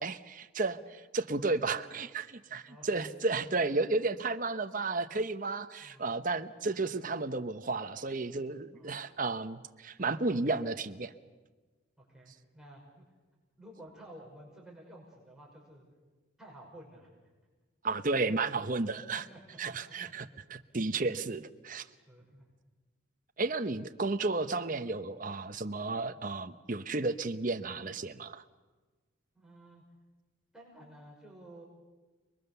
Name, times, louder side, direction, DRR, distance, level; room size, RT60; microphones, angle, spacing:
voice 1, 0.0-11.1 17.8-19.2 19.6-21.9 23.4-28.4, right 3 dB, 40° right, 9 dB, 0.9 m, -33 dB
voice 2, 8.7-9.2 12.0-13.0 13.6-15.8 16.4-17.1 19.1-20.1 20.9-21.0 22.1-22.5 29.3-29.8 30.5-31.6, right 1 dB, 5° right, -4 dB, 5.9 m, -53 dB
30.0 x 21.5 x 7.0 m, 1.3 s
head